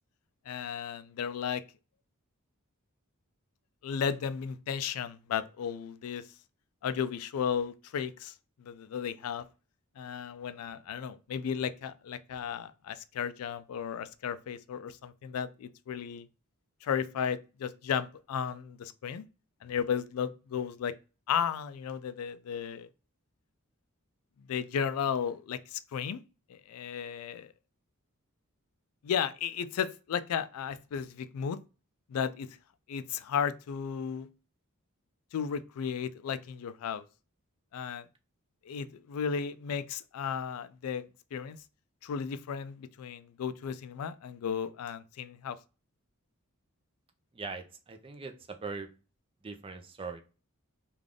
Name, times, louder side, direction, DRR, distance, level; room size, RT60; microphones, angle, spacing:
voice 1, 0.5-1.6 3.8-6.2 6.8-8.3 8.7-9.5 10.0-16.3 16.8-19.2 19.6-20.9 21.3-22.9 24.5-26.2 26.5-27.5 29.0-31.6 32.1-32.5 32.9-34.3 35.3-37.0 37.7-38.0 38.7-41.0 41.3-41.6 42.0-45.6, left 7 dB, 75° left, 0.3 m, -34 dB
voice 2, 47.3-48.9 49.4-50.2, right 4 dB, 25° right, 0.5 m, -41 dB
3.3 x 2.4 x 3.6 m
head